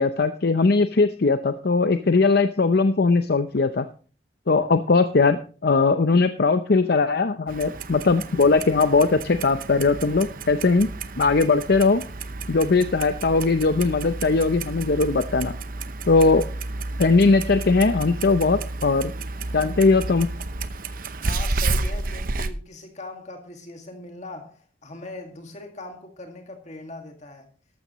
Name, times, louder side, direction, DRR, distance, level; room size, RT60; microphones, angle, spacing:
voice 1, 0.0-3.9 4.5-10.9 11.2-12.0 12.5-15.5 16.1-16.4 17.0-19.1 19.5-20.3, left 3 dB, 55° left, 9 dB, 0.6 m, -20 dB
Clock, 7.5-22.5, right 3 dB, 50° right, 0.8 m, -31 dB
voice 2, 21.2-27.5, left 2 dB, 40° left, 4 dB, 2.0 m, -40 dB
13.5 x 12.5 x 3.0 m, 0.38 s
head